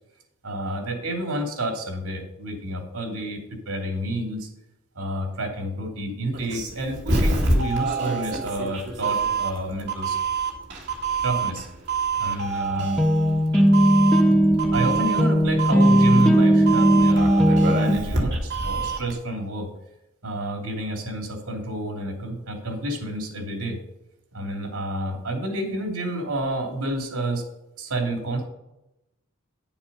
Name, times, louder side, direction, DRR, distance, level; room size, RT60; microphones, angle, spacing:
voice 1, 0.4-3.4 3.6-4.5 4.9-10.2 11.2-11.7 12.2-13.0 14.0-14.1 14.7-19.7 20.2-23.8 24.3-27.4 27.8-28.4, right 1 dB, 80° right, 2 dB, 2.9 m, -29 dB
Doorbell, 6.3-19.1, right 4 dB, 55° right, 2.3 m, -26 dB
sound 1, 12.8-18.0, equal, 5° left, 0.8 m, -18 dB
10.0 x 7.2 x 5.5 m, 0.90 s
head